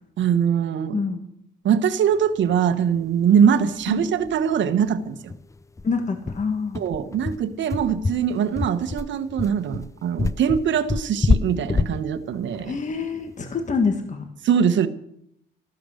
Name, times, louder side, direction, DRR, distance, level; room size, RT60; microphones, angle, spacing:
voice 1, 0.2-0.9 1.6-5.3 6.7-12.7 14.4-14.9, right 8 dB, 70° right, 10 dB, 1.4 m, -22 dB
sound 1, 3.4-3.5 3.8-3.9 4.2-4.4 4.7-4.8 5.3-13.7, left 4 dB, 15° left, 0.5 m, -26 dB
voice 2, 5.8-6.8 12.6-14.2, left 4 dB, 40° left, 6 dB, 1.8 m, -26 dB
14.0 x 12.0 x 6.5 m, 0.75 s
cardioid pair, 90°, 20 cm